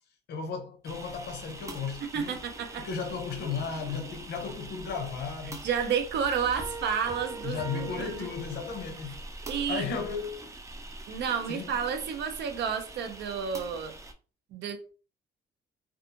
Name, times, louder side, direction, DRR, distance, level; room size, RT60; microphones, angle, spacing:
voice 1, 0.3-2.4 2.8-5.7 7.4-9.2 9.7-10.4 11.5-11.7, left 6 dB, 70° left, 0.7 m, -35 dB
sound 1, 0.8-14.1, right 2 dB, 15° right, 0.4 m, -44 dB
voice 2, 2.0-2.9 5.6-8.3 9.5-9.8 11.1-13.9 14.5-14.9, right 7 dB, 75° right, 0.6 m, -31 dB
sound 2, 6.6-9.1, right 3 dB, 40° right, 1.4 m, -42 dB
2.6 x 2.4 x 2.7 m
cardioid pair, 140°, 18 cm